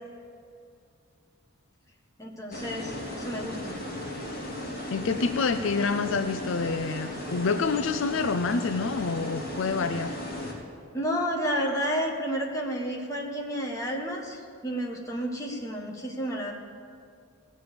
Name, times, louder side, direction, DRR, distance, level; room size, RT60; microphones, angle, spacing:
voice 1, 2.2-3.8 10.9-16.5, equal, 15° left, -1 dB, 1.6 m, -31 dB
sound 1, 2.5-10.5, left 1 dB, 40° left, 3.5 m, -36 dB
voice 2, 4.9-10.2, left 4 dB, 65° left, 9 dB, 0.5 m, -27 dB
17.0 x 7.5 x 6.9 m, 2.4 s
head